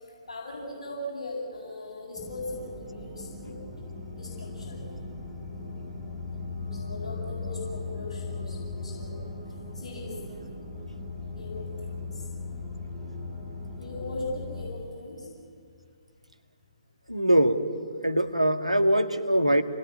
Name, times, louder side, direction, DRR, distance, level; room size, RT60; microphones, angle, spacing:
voice 1, 0.3-3.5 4.1-4.9 6.6-9.2 9.7-10.2 11.3-12.2 13.8-15.3, left 2 dB, 55° left, -5 dB, 7.6 m, -39 dB
sound 1, 2.2-14.7, left 3 dB, 15° right, 6.9 m, -38 dB
voice 2, 17.1-17.6 18.0-19.6, right 1 dB, 90° right, 6 dB, 1.9 m, -22 dB
28.0 x 21.0 x 9.9 m, 2.2 s
figure-of-eight pair, 130°, 3 cm